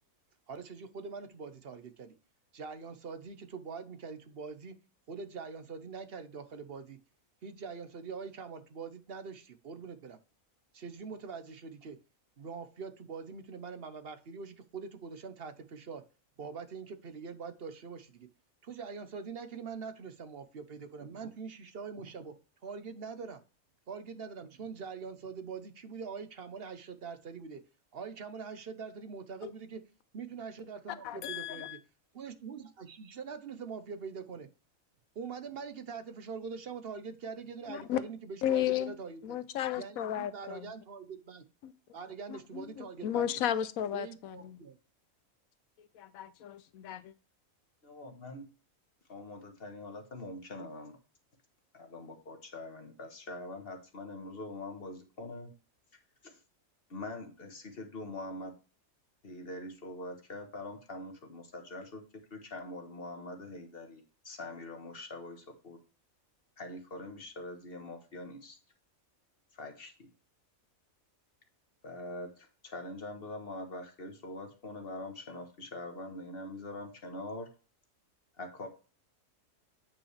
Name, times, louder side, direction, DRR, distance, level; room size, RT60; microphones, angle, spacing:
voice 1, 0.5-2.1 2.5-4.7 5.1-7.0 7.4-10.2 10.7-12.0 12.4-16.0 16.4-18.3 18.6-22.4 22.6-23.4 23.9-27.6 27.9-29.8 30.1-31.8 32.1-34.5 35.1-39.4 39.7-41.4 41.9-43.3 43.9-44.8, right 5 dB, 50° right, 1.0 m, -43 dB
voice 2, 31.0-31.8 37.7-38.0 38.4-39.0 39.2-40.7 41.6-41.7 42.3-44.6 45.9-47.1, left 11 dB, 90° left, 1.1 m, -34 dB
voice 3, 47.8-48.5 49.1-51.0 51.7-55.5 56.2-56.4 56.9-58.5 59.2-62.0 62.3-65.8 66.6-68.6 69.5-70.1 71.8-77.5 78.4-78.7, left 2 dB, 45° left, 1.5 m, -43 dB
8.8 x 5.3 x 3.3 m
omnidirectional pair, 1.4 m